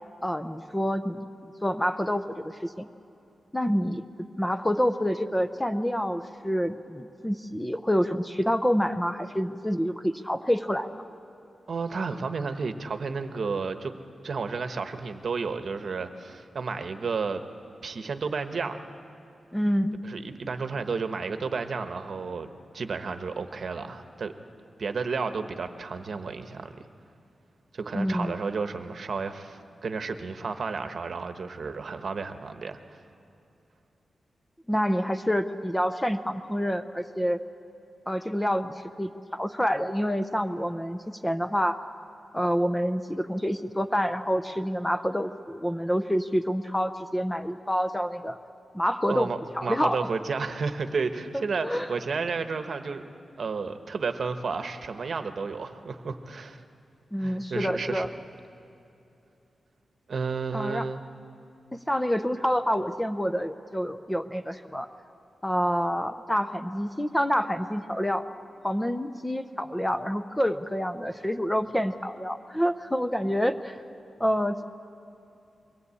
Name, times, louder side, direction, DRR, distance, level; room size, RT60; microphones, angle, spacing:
voice 1, 0.2-2.9 3.5-4.1 4.4-11.0 19.5-20.0 27.9-28.4 34.7-37.4 38.1-41.8 42.3-48.4 48.7-49.3 49.6-50.0 51.6-51.9 57.1-58.1 60.5-60.9 61.7-64.9 65.4-68.2 68.6-73.8 74.2-74.6, equal, 5° left, 9 dB, 0.5 m, -27 dB
voice 2, 11.7-14.0 14.2-17.4 17.8-18.9 20.0-24.3 24.8-26.7 27.7-32.8 49.1-53.0 53.4-56.6 57.2-58.1 60.1-61.0, right 4 dB, 50° right, 8 dB, 1.0 m, -32 dB
23.0 x 17.0 x 8.4 m, 2.7 s
wide cardioid pair, 160°, 0 cm